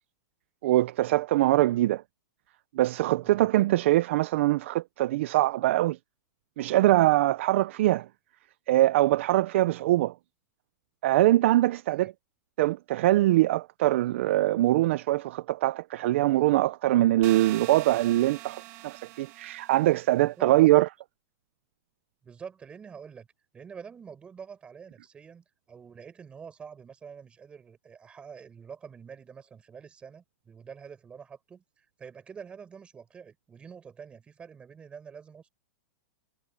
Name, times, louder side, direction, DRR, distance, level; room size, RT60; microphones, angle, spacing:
voice 1, 0.6-2.0 2.7-6.0 6.6-8.1 8.7-10.1 11.0-12.1 12.6-20.9, right 16 dB, 50° right, 0.5 m, -23 dB
sound 1, 17.2-20.1, right 18 dB, 30° right, 1.3 m, -43 dB
voice 2, 20.4-20.8 22.2-23.3 23.5-35.5, right 6 dB, 10° right, 5.5 m, -46 dB
supercardioid pair, 170°, 9 cm